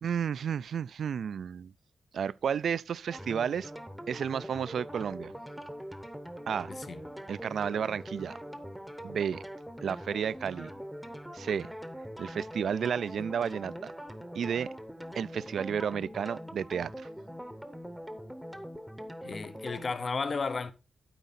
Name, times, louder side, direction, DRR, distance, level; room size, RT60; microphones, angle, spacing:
voice 1, 0.0-1.7 2.1-3.7 4.1-5.3 6.5-6.7 7.3-8.4 9.0-9.4 9.8-10.7 11.3-11.7 12.2-13.9 14.3-14.7 15.1-17.1, right 7 dB, 75° right, 0.3 m, -32 dB
sound 1, 3.1-19.9, equal, ahead, 0.8 m, -43 dB
voice 2, 19.2-20.7, left 4 dB, 40° left, 0.7 m, -33 dB
11.5 x 5.0 x 4.1 m
wide cardioid pair, 160°, 0 cm